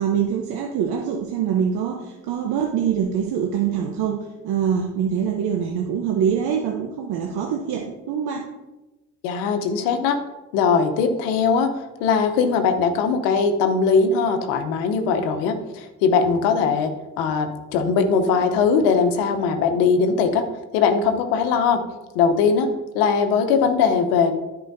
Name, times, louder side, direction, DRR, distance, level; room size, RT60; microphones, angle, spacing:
voice 1, 0.0-8.5, right 8 dB, 70° right, 2 dB, 1.0 m, -24 dB
voice 2, 9.2-10.2 10.5-20.4 20.7-21.8 22.1-22.7 22.9-24.3, left 5 dB, 80° left, 7 dB, 1.0 m, -20 dB
13.5 x 4.8 x 2.7 m, 1.1 s
hypercardioid pair, 50°, 40 cm